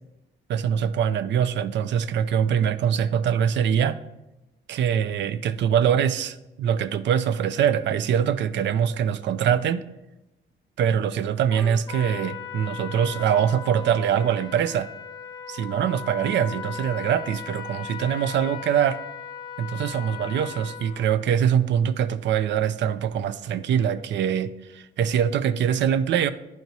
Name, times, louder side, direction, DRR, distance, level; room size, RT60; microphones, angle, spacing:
voice 1, 0.5-4.0 4.7-9.8 10.8-14.9 15.5-19.0 19.6-26.3, right 8 dB, 65° right, 14 dB, 0.4 m, -23 dB
Trumpet, 11.5-21.1, left 8 dB, 25° left, 0.7 m, -38 dB
10.5 x 4.5 x 2.7 m, 0.96 s
cardioid pair, 90°, 20 cm